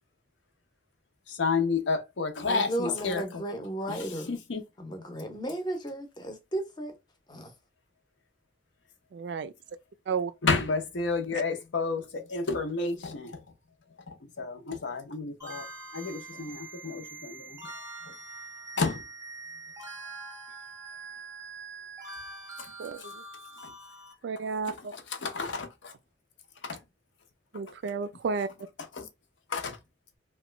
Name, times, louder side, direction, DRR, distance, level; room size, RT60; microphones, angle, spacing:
voice 1, 1.3-3.2 3.9-4.6 10.4-13.4 14.4-15.6 15.9-17.6 18.8-19.0 25.2-25.9 26.6-26.8 29.0-29.1 29.5-29.8, left 4 dB, 75° left, 0.6 m, -30 dB
voice 2, 2.5-4.3 4.8-6.9 7.3-7.5, right 1 dB, 25° left, 0.6 m, -34 dB
voice 3, 9.1-9.5 10.1-10.3 11.3-11.4 22.8-23.2 24.2-24.9 27.5-28.5, right 5 dB, 60° right, 0.3 m, -32 dB
sound 1, 15.4-24.1, right 3 dB, 15° right, 0.7 m, -44 dB
2.9 x 2.2 x 3.1 m
head